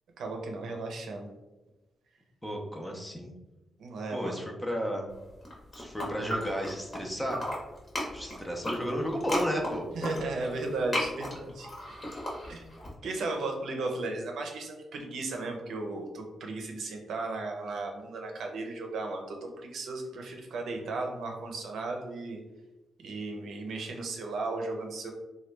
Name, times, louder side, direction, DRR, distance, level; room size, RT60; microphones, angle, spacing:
voice 1, 0.2-1.3 3.8-4.4 9.9-11.7 12.4-12.6 13.0-22.4 23.0-25.1, right 3 dB, 80° right, 2 dB, 0.6 m, -35 dB
voice 2, 2.4-3.3 4.1-5.1 5.7-7.4 8.0-9.8, equal, 10° left, 1 dB, 0.6 m, -33 dB
sound 1, 5.3-7.0 7.3-12.9, equal, 30° left, 1.0 m, -35 dB
3.0 x 2.3 x 3.2 m, 1.0 s
cardioid pair, 105°, 0 cm